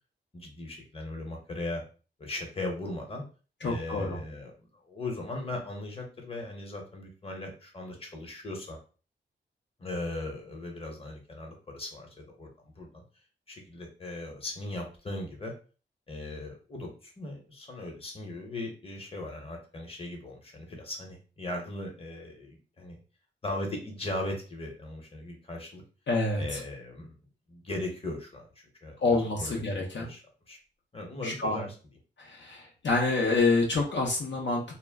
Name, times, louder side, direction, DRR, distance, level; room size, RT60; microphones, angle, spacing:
voice 1, 0.3-1.8 2.2-3.2 3.6-8.8 9.8-13.0 13.5-15.5 16.1-23.0 23.4-25.8 26.4-27.2 27.5-28.5 28.8-29.6 30.0-30.2 30.5-30.6 30.9-31.7, left 2 dB, 30° left, 1 dB, 0.9 m, -38 dB
voice 2, 3.6-4.2 26.1-26.4 29.0-30.1 31.2-31.6 32.2-34.6, left 3 dB, 65° left, -1 dB, 0.6 m, -27 dB
2.1 x 2.1 x 3.4 m, 0.36 s
cardioid pair, 75°, 20 cm